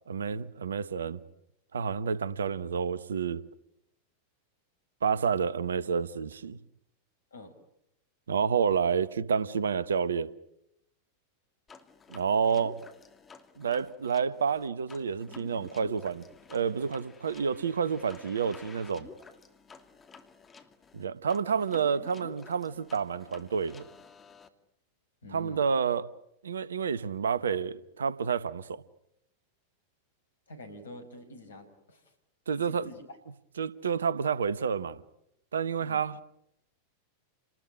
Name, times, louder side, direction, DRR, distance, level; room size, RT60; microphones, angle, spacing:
voice 1, 0.1-1.2 1.7-3.5 5.0-6.6 8.3-10.3 12.1-12.8 13.6-19.1 20.9-23.8 25.3-26.1 26.4-28.8 32.5-32.9 33.6-35.0 35.5-36.2, right 6 dB, 70° right, 1.1 m, -29 dB
sound 1, 11.7-24.5, left 5 dB, 20° left, 2.5 m, -52 dB
voice 2, 25.2-25.6 30.5-32.1 32.6-33.0 35.8-36.0, left 1 dB, 70° left, 5.6 m, -47 dB
29.5 x 20.0 x 9.8 m
figure-of-eight pair, 90°, 0 cm